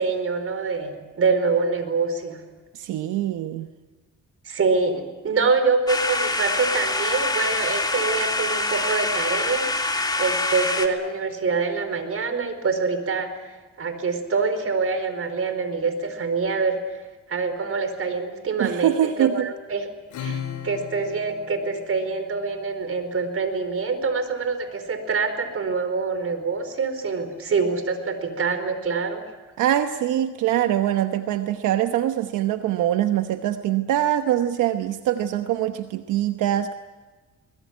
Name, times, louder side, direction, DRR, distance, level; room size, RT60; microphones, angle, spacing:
voice 1, 0.0-2.4 4.4-9.7 10.2-16.8 17.3-19.9 20.2-29.2, right 4 dB, 50° right, 9 dB, 4.7 m, -25 dB
voice 2, 2.7-3.7 18.6-19.5 29.6-36.7, right 11 dB, 85° right, 8 dB, 1.1 m, -23 dB
sound 1, 5.9-10.9, left 2 dB, 15° left, 2.9 m, -25 dB
Acoustic guitar / Strum, 20.1-23.0, left 7 dB, 75° left, 4.1 m, -36 dB
23.0 x 21.0 x 9.4 m, 1.3 s
cardioid pair, 90°, 30 cm